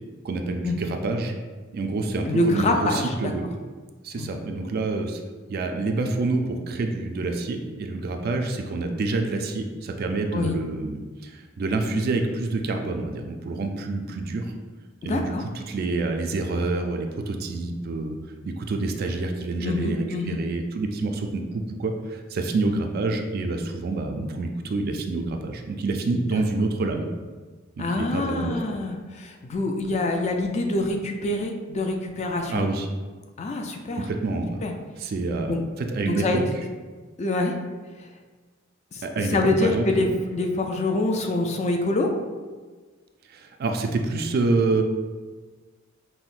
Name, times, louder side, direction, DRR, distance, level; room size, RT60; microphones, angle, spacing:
voice 1, 0.2-1.4 1.7-3.4 4.0-5.2 5.5-14.5 15.0-15.3 15.7-18.2 18.4-27.1 27.8-28.6 32.5-32.9 34.0-34.6 35.0-36.5 39.0-39.8 43.3-44.8, right 3 dB, 50° right, 4 dB, 0.3 m, -27 dB
voice 2, 2.3-3.3 4.1-4.3 10.3-10.5 15.0-15.4 19.6-20.4 26.1-26.4 27.8-32.6 33.4-34.1 34.6-34.7 35.5-35.6 36.1-36.5 37.2-37.5 38.9-39.0 39.3-42.1, left 2 dB, 35° left, 3 dB, 0.3 m, -25 dB
5.5 x 2.1 x 2.5 m, 1.4 s
head